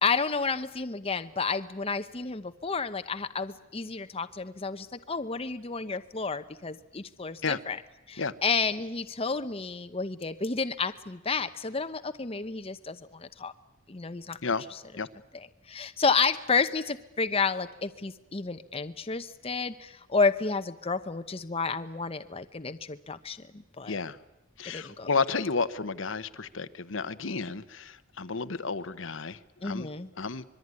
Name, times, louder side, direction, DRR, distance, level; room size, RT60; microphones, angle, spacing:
voice 1, 0.0-7.8 8.1-13.5 13.9-14.4 15.3-24.0 24.7-25.1 29.6-30.1, left 4 dB, 30° left, 9 dB, 0.9 m, -31 dB
voice 2, 23.9-24.2 24.6-29.9 30.2-30.4, left 4 dB, 70° left, 13 dB, 1.1 m, -32 dB
25.5 x 22.0 x 9.7 m, 0.94 s
head